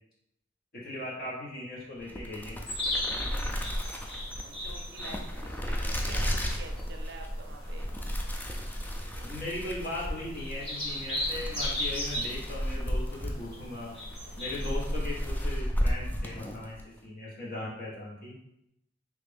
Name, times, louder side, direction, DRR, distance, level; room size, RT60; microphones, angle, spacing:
voice 1, 0.7-2.6 9.1-13.9 14.3-18.3, left 1 dB, 50° left, -5 dB, 1.2 m, -38 dB
sound 1, 2.0-16.9, equal, 10° left, 0.3 m, -34 dB
sound 2, 2.7-15.4, left 1 dB, 30° left, 1.0 m, -37 dB
voice 2, 4.4-7.9, right 3 dB, 60° right, 4 dB, 0.5 m, -47 dB
3.3 x 2.4 x 3.4 m, 0.80 s
head